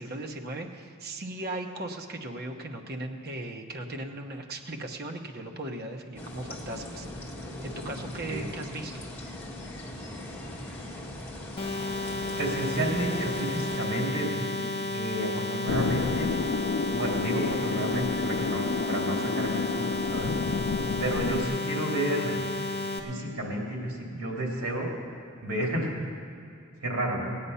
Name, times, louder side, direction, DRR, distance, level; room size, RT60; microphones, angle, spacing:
voice 1, 0.0-7.1 7.6-9.0, right 1 dB, 45° right, 3 dB, 0.9 m, -37 dB
sound 1, 6.2-13.8, left 1 dB, 10° left, 1.5 m, -40 dB
sound 2, 11.6-23.0, left 2 dB, 25° left, 1.5 m, -32 dB
voice 2, 12.4-16.3 16.9-20.4 21.0-22.4 23.0-24.9 25.4-25.9 26.8-27.4, right 1 dB, 85° right, -2 dB, 3.1 m, -31 dB
sound 3, 15.7-21.4, left 4 dB, 60° left, 0.4 m, -30 dB
17.0 x 9.6 x 5.6 m, 2.5 s
head